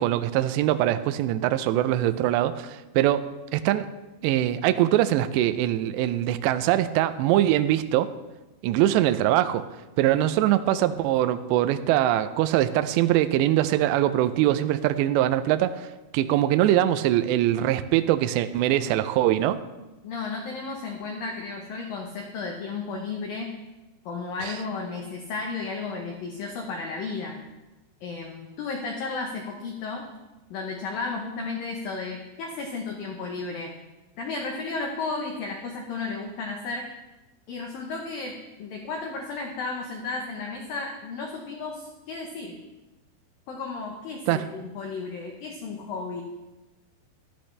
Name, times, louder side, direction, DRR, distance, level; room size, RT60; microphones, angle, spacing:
voice 1, 0.0-3.9 4.2-8.1 8.6-9.6 10.0-15.9 16.1-19.6 24.4-24.5 44.3-44.4, right 13 dB, 90° right, 11 dB, 2.4 m, -23 dB
voice 2, 20.0-23.5 24.1-27.4 28.0-30.0 30.5-33.7 34.2-36.8 37.5-42.5 43.5-46.2, left 4 dB, 80° left, 1 dB, 2.0 m, -33 dB
13.5 x 11.5 x 3.3 m, 1.1 s
omnidirectional pair, 5.6 m